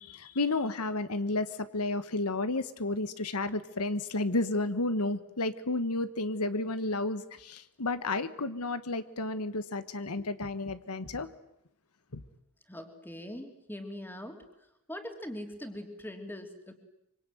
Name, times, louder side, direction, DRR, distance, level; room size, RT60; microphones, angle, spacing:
voice 1, 0.0-11.3 12.1-12.2, left 2 dB, 90° left, 12 dB, 1.4 m, -32 dB
voice 2, 12.7-14.4 14.9-16.7, left 1 dB, 10° left, 5 dB, 3.1 m, -41 dB
25.5 x 25.0 x 9.3 m, 0.80 s
head